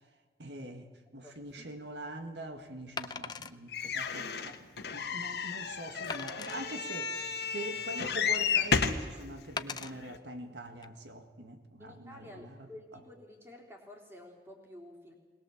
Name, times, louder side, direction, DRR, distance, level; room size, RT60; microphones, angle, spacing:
voice 1, 0.4-12.7, right 1 dB, 85° right, 6 dB, 1.8 m, -44 dB
voice 2, 1.2-1.7 11.8-15.1, left 1 dB, 15° right, 0 dB, 3.5 m, -51 dB
Wood, 1.4-1.5 3.0-3.6 4.2-4.3 4.8-4.9 6.1-6.6 7.4-8.1 9.6-9.9 10.7-10.9, left 5 dB, 25° left, 0.6 m, -40 dB
sound 1, 3.7-9.1 9.8-9.9 10.1-10.2, left 6 dB, 70° left, 1.4 m, -32 dB
21.0 x 20.0 x 7.3 m, 1.4 s
head